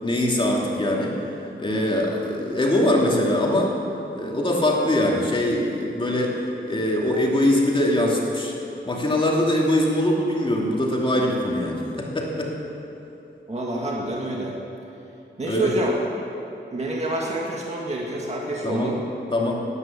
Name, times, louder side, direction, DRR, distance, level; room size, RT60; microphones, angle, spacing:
voice 1, 0.0-1.1 1.6-3.7 4.1-8.5 8.9-12.5 15.4-15.7 18.6-18.9 19.3-19.6, left 1 dB, 25° left, -2 dB, 2.6 m, -22 dB
voice 2, 13.5-14.6 15.4-15.9 16.7-18.9, right 1 dB, 35° right, -3 dB, 1.9 m, -27 dB
18.5 x 9.8 x 7.4 m, 3.0 s
wide cardioid pair, 155°, 20 cm